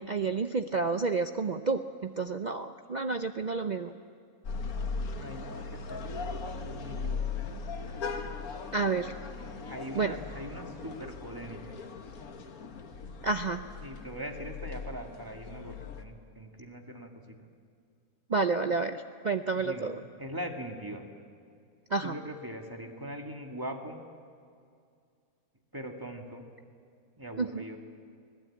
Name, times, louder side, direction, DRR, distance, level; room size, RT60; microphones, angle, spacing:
voice 1, 0.0-3.9 8.7-9.1 9.9-10.1 13.2-13.6 18.3-20.0 21.9-22.2 27.4-27.6, right 4 dB, 50° right, 8 dB, 0.5 m, -30 dB
sound 1, 4.4-16.0, left 4 dB, 80° left, 1.7 m, -38 dB
voice 2, 5.1-6.0 6.6-7.2 9.7-11.8 13.8-17.5 19.5-19.9 20.2-21.1 22.0-24.0 25.7-26.4 27.2-27.8, equal, 15° right, 2 dB, 1.9 m, -41 dB
24.5 x 17.5 x 8.6 m, 2.3 s
omnidirectional pair, 1.5 m